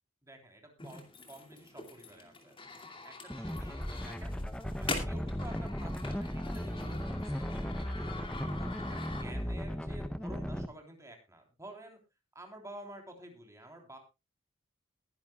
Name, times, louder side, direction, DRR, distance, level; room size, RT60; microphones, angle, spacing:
voice 1, 0.2-2.5 3.0-4.4 4.8-8.1 8.6-12.0 12.4-14.0, right 1 dB, 15° right, 3 dB, 3.4 m, -51 dB
sound 1, 0.8-9.6, left 3 dB, 25° left, 2.6 m, -44 dB
sound 2, 3.3-10.7, equal, 5° left, 0.8 m, -36 dB
21.0 x 10.5 x 2.3 m, 0.26 s
head